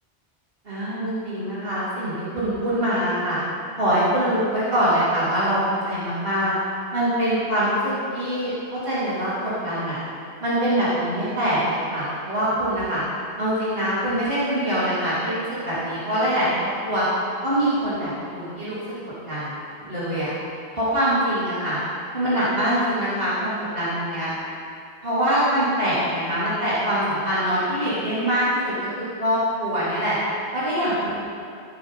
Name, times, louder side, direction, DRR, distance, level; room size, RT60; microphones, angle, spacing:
voice 1, 0.7-3.4 3.8-6.5 6.9-10.0 10.4-13.0 13.4-17.1 17.4-18.8 19.3-20.3 20.7-21.8 22.1-24.3 25.0-30.2 30.5-31.2, equal, 65° right, -10 dB, 3.6 m, -24 dB
15.5 x 6.9 x 5.4 m, 2.5 s
omnidirectional pair, 1.0 m